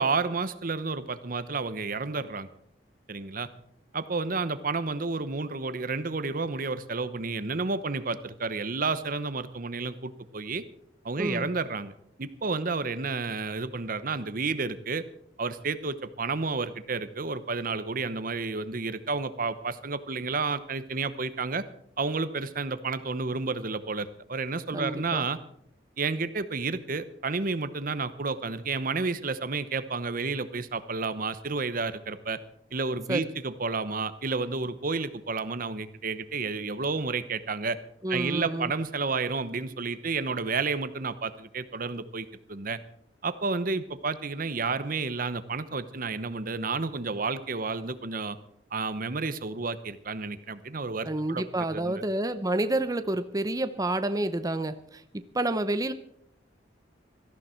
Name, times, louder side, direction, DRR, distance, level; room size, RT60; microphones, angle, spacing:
voice 1, 0.0-2.5 3.1-3.5 3.9-10.6 11.0-11.9 12.2-15.0 15.4-21.6 22.0-25.4 26.0-32.4 32.7-37.8 38.1-42.8 43.2-48.4 48.7-52.0, right 4 dB, 50° right, 13 dB, 0.9 m, -31 dB
voice 2, 11.2-11.5 24.7-25.3 33.1-33.2 38.0-38.7 51.0-55.0 55.3-55.9, right 1 dB, 20° right, 10 dB, 0.7 m, -29 dB
18.0 x 14.0 x 4.5 m, 0.71 s
head